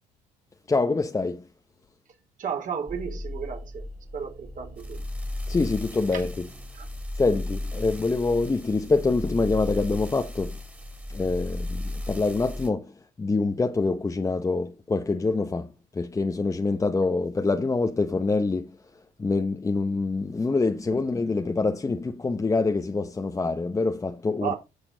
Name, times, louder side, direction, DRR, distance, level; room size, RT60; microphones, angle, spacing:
voice 1, 0.7-1.4 5.5-6.3 7.2-10.6 11.1-12.9 13.2-15.7 15.9-18.8 19.2-24.5, left 3 dB, 20° left, 0.9 m, -25 dB
voice 2, 2.4-5.1 6.1-6.3 6.7-6.9 20.9-21.3 24.4-24.6, right 7 dB, 50° right, 3.6 m, -34 dB
sound 1, 2.9-12.7, left 1 dB, 10° right, 2.6 m, -35 dB
11.0 x 6.9 x 3.9 m
cardioid pair, 110°, 17 cm